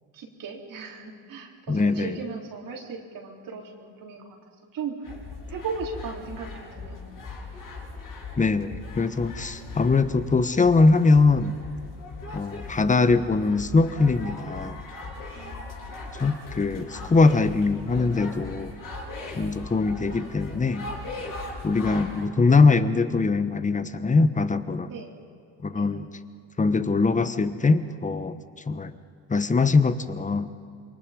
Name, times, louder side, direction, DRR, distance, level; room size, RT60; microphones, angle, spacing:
voice 1, 0.1-4.4 4.7-5.1 5.5-7.1 15.3-16.0 24.9-25.2 25.7-25.9, right 5 dB, 55° right, 1 dB, 4.3 m, -37 dB
voice 2, 1.7-2.2 8.4-11.5 12.3-14.8 16.2-18.7 19.3-20.9 21.6-24.9 25.6-26.1 26.6-28.9 29.3-30.5, left 3 dB, 20° left, 12 dB, 1.3 m, -22 dB
sound 1, 5.0-22.3, left 3 dB, 55° left, 7.4 m, -39 dB
28.0 x 23.5 x 5.4 m, 2.4 s
cardioid pair, 100°, 40 cm